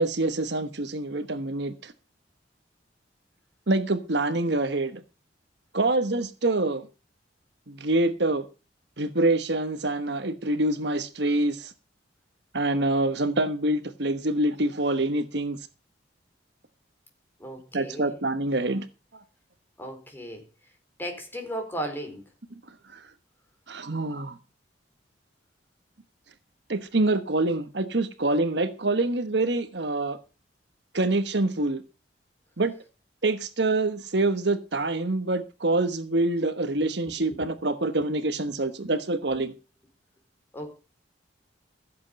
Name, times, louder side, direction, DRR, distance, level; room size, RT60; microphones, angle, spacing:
voice 1, 0.0-1.9 3.7-5.0 5.7-6.9 7.7-8.4 9.0-11.7 12.5-15.6 17.7-18.9 19.1-19.2 22.9-23.0 23.7-24.4 26.7-30.2 30.9-31.8 32.6-32.7 33.2-39.5, right 2 dB, 60° right, 1.2 m, -26 dB
voice 2, 17.4-18.1 19.8-20.4 21.0-22.2 37.3-37.4 40.5-40.8, right 1 dB, 10° left, 4.1 m, -35 dB
16.0 x 7.9 x 5.3 m
head